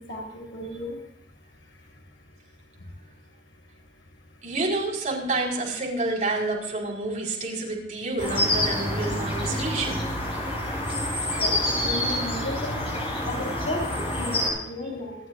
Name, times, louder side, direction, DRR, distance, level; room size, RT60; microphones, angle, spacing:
voice 1, 0.1-1.0 11.4-12.8 13.2-13.3 13.7-13.8 14.2-15.2, left 1 dB, 80° left, -1 dB, 7.1 m, -34 dB
voice 2, 4.4-10.0, right 2 dB, 40° right, -3 dB, 5.2 m, -28 dB
sound 1, 8.2-14.5, left 1 dB, 30° left, 7.8 m, -27 dB
29.0 x 13.0 x 2.6 m, 0.79 s
head